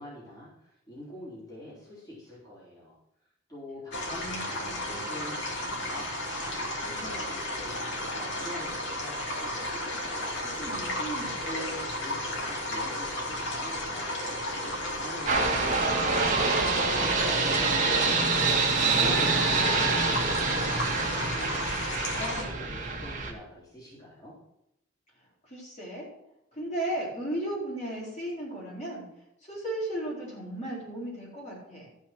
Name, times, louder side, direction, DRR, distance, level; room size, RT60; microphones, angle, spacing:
voice 1, 0.0-3.0 3.5-10.6 11.4-18.3 18.5-21.7 22.1-24.3, equal, 20° left, -8 dB, 4.0 m, -45 dB
sound 1, 3.9-22.4, left 1 dB, 70° left, 2.7 m, -33 dB
voice 2, 4.1-5.1 5.6-5.9 10.6-11.4 18.8-20.2 25.5-26.1 26.5-29.0 29.5-31.9, right 1 dB, 35° left, -6 dB, 4.3 m, -36 dB
sound 2, 15.3-23.3, right 4 dB, 40° right, 2.0 m, -26 dB
13.5 x 5.7 x 6.2 m, 0.82 s
head